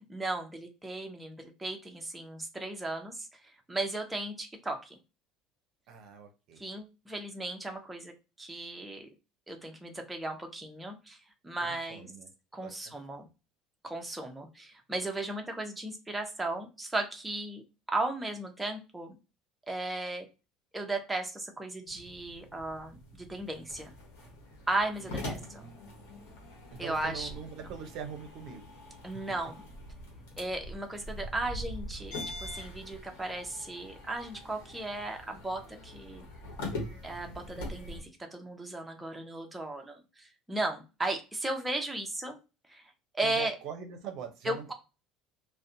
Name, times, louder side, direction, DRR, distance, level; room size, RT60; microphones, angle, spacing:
voice 1, 0.1-3.3 3.7-5.0 6.6-8.1 8.4-9.1 9.5-11.2 11.4-12.1 12.5-13.3 13.8-17.6 17.9-19.2 19.7-20.3 20.7-23.9 24.7-25.6 26.8-27.3 29.0-29.6 30.4-36.2 37.0-42.4 42.7-42.8 43.1-43.6 44.4-44.7, right 2 dB, 10° right, 3 dB, 0.6 m, -36 dB
voice 2, 5.9-6.6 11.6-12.3 12.6-12.7 13.1-13.3 25.0-25.9 26.7-28.7 29.3-29.4 43.2-44.7, right 7 dB, 65° right, 5 dB, 0.5 m, -43 dB
sound 1, 21.9-38.0, left 1 dB, 85° left, 1.0 m, -43 dB
2.5 x 2.1 x 2.6 m, 0.30 s
supercardioid pair, 90°, 0 cm